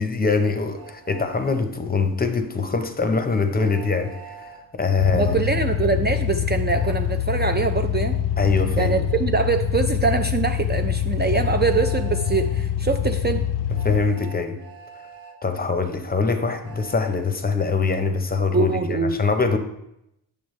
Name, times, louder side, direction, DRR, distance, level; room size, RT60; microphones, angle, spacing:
voice 1, 0.0-5.5 8.4-8.9 13.8-14.6 15.4-19.6, left 4 dB, 25° left, 7 dB, 0.6 m, -23 dB
Train, 0.7-1.5 3.6-4.6 6.7-7.0 9.1-9.2 11.3-12.5 13.7-15.4 16.6-17.2, right 6 dB, 65° right, 1.2 m, -43 dB
sound 1, 5.0-14.0, left 9 dB, 85° left, 0.5 m, -24 dB
voice 2, 5.1-8.2 8.8-13.4 18.5-19.2, right 5 dB, 30° right, 5 dB, 0.4 m, -23 dB
8.7 x 6.9 x 3.1 m, 0.84 s
wide cardioid pair, 130°, 39 cm